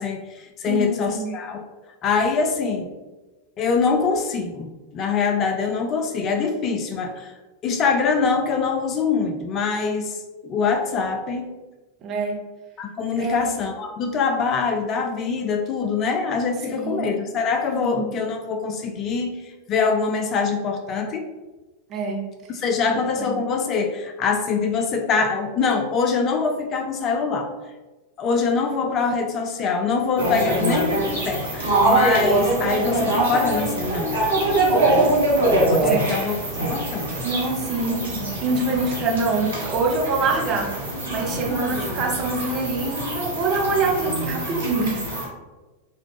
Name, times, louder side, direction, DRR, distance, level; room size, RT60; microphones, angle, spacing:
voice 1, 0.0-1.6 2.0-2.8 3.6-7.3 7.6-11.5 12.8-21.2 22.5-27.5 28.2-34.2 35.7-36.3 36.7-37.1, left 5 dB, 30° left, 4 dB, 0.3 m, -24 dB
voice 2, 0.7-1.3 12.0-12.4 13.2-13.5 16.7-17.1 17.7-18.1 21.9-22.2 23.2-23.3 35.8-36.1 37.2-38.1 38.4-40.7 41.1-45.0, right 3 dB, 30° right, -1 dB, 0.7 m, -25 dB
sound 1, 30.2-45.2, right 2 dB, 70° right, 1.3 m, -23 dB
3.2 x 2.3 x 3.5 m, 1.2 s
figure-of-eight pair, 90°, 0 cm